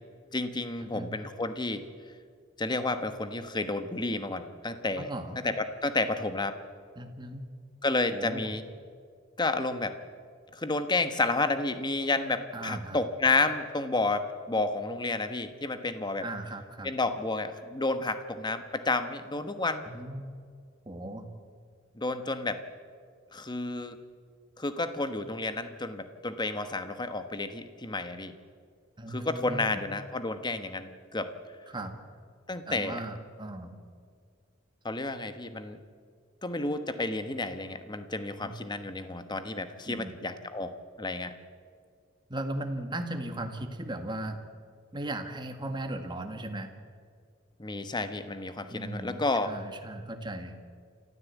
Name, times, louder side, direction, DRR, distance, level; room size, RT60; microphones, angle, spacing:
voice 1, 0.3-1.8 2.6-5.1 5.4-6.6 7.8-8.6 9.4-10.0 10.5-16.3 16.8-19.8 21.9-22.6 23.3-24.0 24.6-28.3 29.1-31.3 32.5-33.0 34.8-35.8 36.4-41.3 47.6-49.5, left 2 dB, 20° left, 9 dB, 1.2 m, -31 dB
voice 2, 5.0-5.4 6.9-7.5 8.1-8.5 12.5-13.0 16.2-16.9 19.9-20.3 20.8-21.3 29.0-29.8 31.7-31.9 32.7-33.8 38.4-38.5 39.9-40.2 42.3-44.4 44.9-46.7 48.7-50.6, right 1 dB, 25° right, 6 dB, 1.7 m, -37 dB
28.5 x 14.0 x 8.3 m, 2.1 s
head